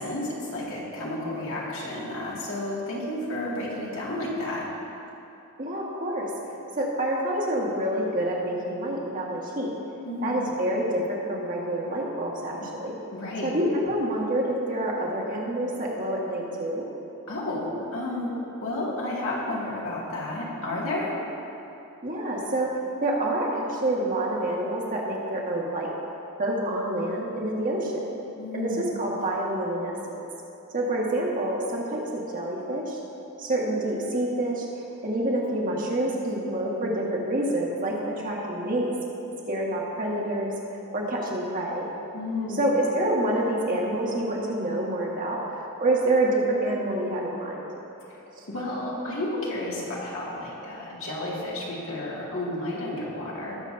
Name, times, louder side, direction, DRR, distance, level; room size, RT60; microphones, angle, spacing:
voice 1, 0.0-4.7 10.0-10.4 12.5-12.6 13.1-13.5 17.3-18.3 18.6-21.2 28.4-28.9 42.1-42.7 48.1-48.2 48.5-53.6, left 1 dB, 65° left, -5 dB, 2.2 m, -31 dB
voice 2, 5.6-6.3 6.8-9.7 10.2-12.5 12.8-12.9 13.4-16.9 22.0-22.7 23.0-25.9 26.4-28.1 28.5-30.2 30.7-33.0 33.4-38.9 39.5-40.5 40.9-41.9 42.6-45.4 45.8-47.7 48.4-48.5, right 1 dB, 40° right, -3 dB, 1.7 m, -27 dB
19.5 x 7.3 x 2.7 m, 2.9 s
head